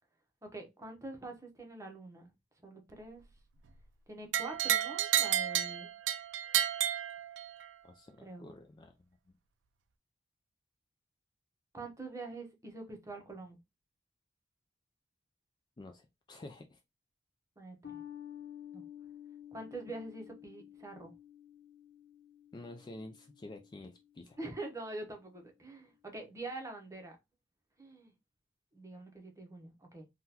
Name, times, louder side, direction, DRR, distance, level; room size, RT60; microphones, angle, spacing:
voice 1, 0.4-2.3 2.6-3.2 4.1-5.9 8.2-8.5 11.7-13.6 17.6-18.0 18.7-18.8 19.5-21.1 24.4-27.2 27.8-28.1 28.7-30.1, right 2 dB, 15° right, 0.8 m, -45 dB
sound 1, 4.3-7.7, right 11 dB, 75° right, 0.4 m, -31 dB
voice 2, 7.8-9.0 9.3-9.4 15.8-16.8 22.5-24.4, left 2 dB, 25° left, 0.3 m, -49 dB
sound 2, 17.8-24.6, left 10 dB, 75° left, 0.9 m, -51 dB
3.7 x 2.3 x 2.8 m
head